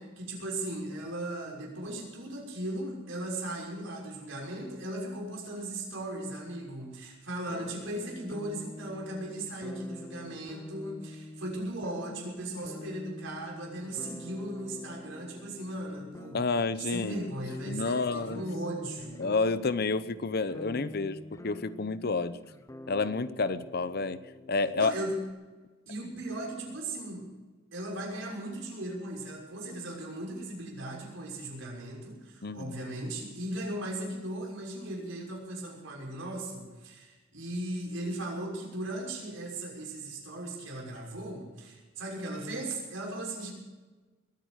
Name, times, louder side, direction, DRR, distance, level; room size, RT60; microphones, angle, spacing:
voice 1, 0.0-16.5 16.8-19.2 24.8-25.2 25.9-27.3 27.7-43.5, right 1 dB, 80° right, -2 dB, 6.2 m, -37 dB
sound 1, 7.5-25.3, left 2 dB, 15° left, 0.7 m, -46 dB
voice 2, 16.3-17.3 17.7-18.4 19.2-21.2 21.4-22.4 22.9-24.2 24.5-24.9 32.4-32.8, left 3 dB, 50° left, 14 dB, 0.7 m, -29 dB
22.0 x 9.4 x 6.5 m, 1.3 s
head